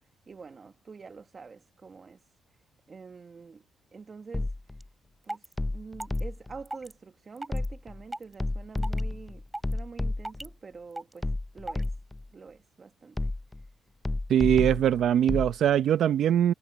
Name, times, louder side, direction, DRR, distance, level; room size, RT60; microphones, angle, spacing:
voice 1, 0.3-2.2 2.9-3.6 3.9-4.5 5.2-9.4 9.7-11.9 12.3-13.2, right 4 dB, 35° right, 1.2 m, -46 dB
sound 1, 4.3-4.9 5.6-6.6 7.5-8.0 8.4-10.5 11.2-12.3 13.2-13.7 14.0-15.5, left 2 dB, 15° left, 0.5 m, -31 dB
sound 2, 4.8-4.9 5.2-5.5 6.0-6.2 6.6-6.9 7.4-7.7 8.1-8.3 8.8-9.0 9.5-9.8 10.2-10.5 11.0-11.2 11.7-11.9, right 1 dB, 10° right, 3.2 m, -36 dB
voice 2, 14.3-16.5, right 10 dB, 70° right, 0.7 m, -22 dB
cardioid pair, 90°, 0 cm